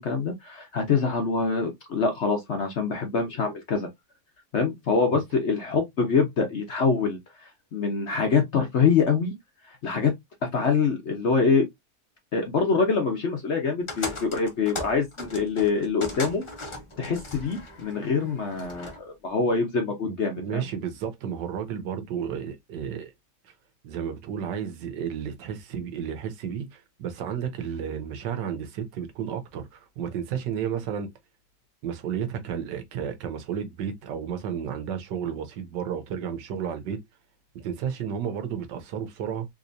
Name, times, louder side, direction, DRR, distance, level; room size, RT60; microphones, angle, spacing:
voice 1, 0.0-3.9 4.5-9.3 9.7-10.1 10.5-11.6 12.3-16.5 17.0-20.7, left 5 dB, 55° left, 0.8 m, -25 dB
sound 1, 13.9-19.0, left 1 dB, 35° left, 0.4 m, -38 dB
voice 2, 20.0-23.1 23.8-31.1 31.8-37.0 37.5-39.5, right 8 dB, 80° right, 1.4 m, -32 dB
3.7 x 2.9 x 2.6 m
omnidirectional pair, 1.9 m